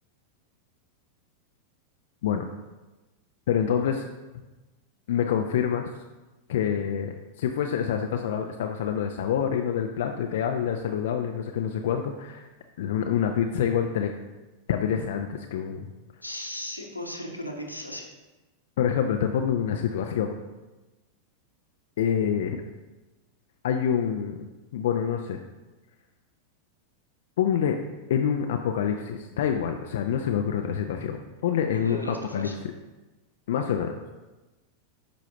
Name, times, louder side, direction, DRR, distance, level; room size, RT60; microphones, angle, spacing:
voice 1, 3.5-4.1 5.1-5.9 6.5-12.5 12.8-14.1 14.7-15.9 18.8-20.3 22.0-22.6 23.6-24.5 24.7-25.4 27.4-27.8 28.1-31.2 31.4-32.0 32.3-32.5 33.5-33.9, left 8 dB, 55° left, 4 dB, 0.4 m, -26 dB
voice 2, 16.2-18.0 31.7-32.6, left 1 dB, 90° left, 0 dB, 1.2 m, -36 dB
10.5 x 5.0 x 2.9 m, 1.1 s
figure-of-eight pair, 90°, 0 cm